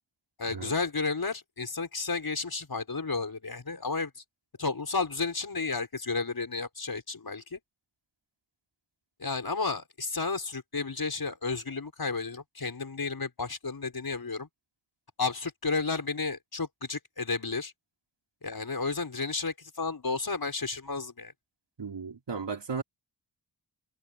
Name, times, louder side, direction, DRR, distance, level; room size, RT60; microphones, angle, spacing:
voice 1, 0.4-4.1 4.6-7.6 9.2-14.5 15.2-17.7 18.4-21.3, left 4 dB, 55° left, 6.3 m, -32 dB
voice 2, 21.8-22.8, right 5 dB, 75° right, 4.0 m, -35 dB
wide cardioid pair, 75°, 43 cm